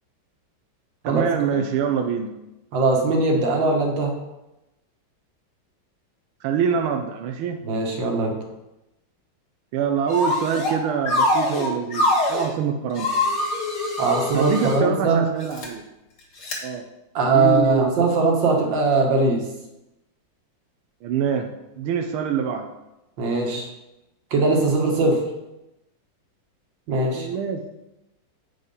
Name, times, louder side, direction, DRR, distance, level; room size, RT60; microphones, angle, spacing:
voice 1, 1.0-2.3 6.4-7.6 9.7-13.1 14.3-15.8 16.6-16.8 17.3-18.1 21.0-21.5 21.8-22.7 27.1-27.6, right 7 dB, 90° right, 4 dB, 1.5 m, -25 dB
voice 2, 2.7-4.1 7.6-8.4 14.0-15.2 17.2-19.4 23.2-23.7 24.3-25.2 26.9-27.3, right 3 dB, 65° right, 1 dB, 2.0 m, -20 dB
sound 1, 10.1-10.8 11.1-12.5 13.0-14.8 15.4-15.7 16.4-16.6, left 1 dB, 55° left, 2.1 m, -23 dB
7.8 x 5.5 x 5.3 m, 0.95 s
omnidirectional pair, 2.2 m